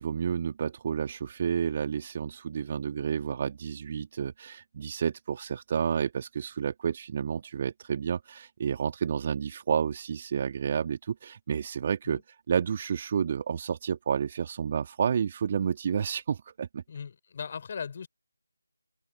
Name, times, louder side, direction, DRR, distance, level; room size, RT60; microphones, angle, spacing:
voice 1, 0.0-16.8, right 7 dB, 25° right, 1.8 m, -30 dB
voice 2, 16.9-18.1, left 6 dB, 30° left, 5.1 m, -38 dB
figure-of-eight pair, 160°, 0 cm